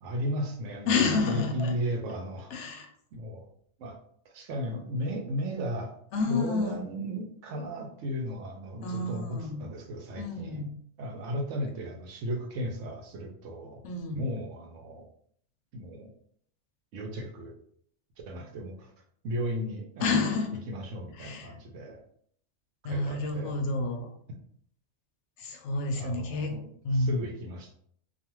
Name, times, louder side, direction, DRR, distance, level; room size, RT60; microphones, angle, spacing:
voice 1, 0.0-2.9 3.1-3.5 3.8-4.0 4.2-5.9 6.2-10.6 11.0-13.8 14.1-15.0 15.7-16.1 16.9-17.6 18.3-18.9 19.2-20.3 20.7-22.0 22.8-23.6 26.0-26.6 26.9-27.7, equal, 90° right, 3 dB, 1.0 m, -35 dB
voice 2, 0.9-1.7 2.5-2.9 6.1-6.8 8.8-9.6 10.2-10.7 13.8-14.2 20.0-20.6 21.2-21.5 22.8-24.1 25.4-26.6 26.8-27.2, left 3 dB, 75° left, 4 dB, 0.9 m, -29 dB
2.4 x 2.4 x 3.0 m, 0.63 s
omnidirectional pair, 1.2 m